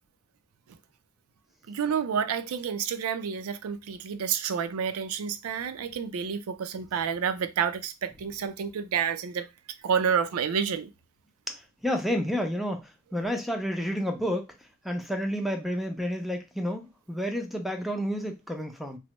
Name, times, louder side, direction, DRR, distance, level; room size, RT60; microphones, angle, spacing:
voice 1, 1.7-9.5 9.8-10.9, right 7 dB, 85° right, 0.4 m, -29 dB
voice 2, 11.5-14.5 14.8-19.0, equal, ahead, 0.4 m, -30 dB
3.1 x 2.0 x 2.9 m
head